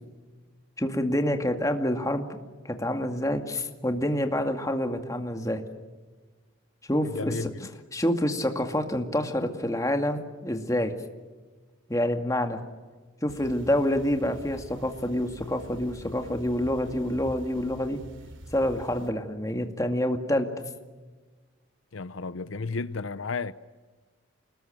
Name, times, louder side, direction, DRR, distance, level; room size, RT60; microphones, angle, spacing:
voice 1, 0.8-2.3 2.6-5.6 6.9-7.3 7.9-10.9 11.9-12.6 13.2-18.0 18.5-20.5, left 1 dB, 15° left, 2.2 m, -27 dB
voice 2, 7.0-7.7 21.9-23.5, left 4 dB, 80° left, 0.8 m, -33 dB
sound 1, 13.3-19.1, right 1 dB, 70° right, 2.9 m, -46 dB
28.5 x 20.5 x 9.1 m
head